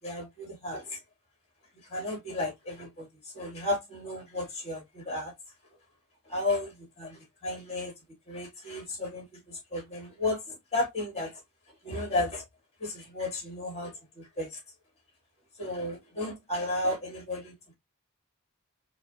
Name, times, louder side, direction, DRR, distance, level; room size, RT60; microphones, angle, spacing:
voice 1, 0.0-1.0 1.9-5.3 6.3-7.9 8.3-11.4 11.8-12.4 12.8-14.6 15.6-17.5, left 2 dB, 30° left, 2.5 m, -33 dB
4.8 x 3.0 x 2.7 m
head